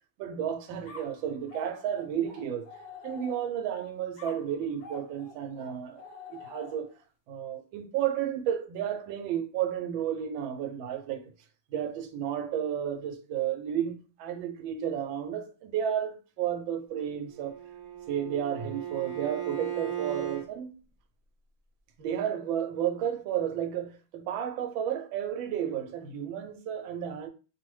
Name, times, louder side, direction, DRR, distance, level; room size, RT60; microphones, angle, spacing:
voice 1, 0.2-2.7 3.0-6.0 6.3-6.9 7.3-11.2 11.7-17.6 18.1-20.7 22.0-27.3, right 9 dB, 90° right, 1.4 m, -32 dB
sound 1, 0.8-3.7 4.2-7.0, left 4 dB, 65° left, 0.4 m, -47 dB
Bowed string instrument, 17.3-20.5, right 10 dB, 60° right, 0.6 m, -36 dB
3.1 x 2.0 x 3.0 m
omnidirectional pair, 2.1 m